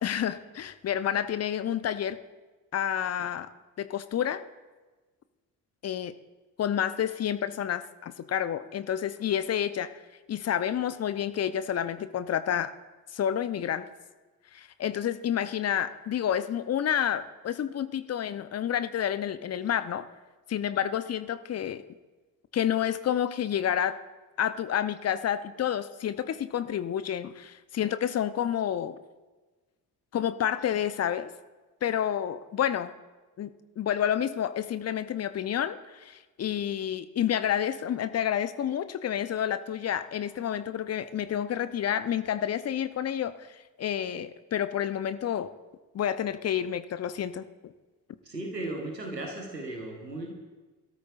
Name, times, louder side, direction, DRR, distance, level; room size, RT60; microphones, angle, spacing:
voice 1, 0.0-2.2 2.7-3.5 3.8-4.4 5.8-6.1 6.6-9.9 10.3-12.7 13.1-13.9 14.5-20.1 20.5-21.8 22.5-24.0 24.4-29.0 30.1-31.3 31.8-32.9 33.4-33.5 33.8-45.5 45.9-47.7, left 9 dB, 30° left, 13 dB, 0.7 m, -29 dB
voice 2, 48.2-50.3, right 2 dB, 90° right, 1 dB, 1.2 m, -36 dB
23.0 x 13.0 x 2.5 m, 1.2 s
figure-of-eight pair, 40°, 48 cm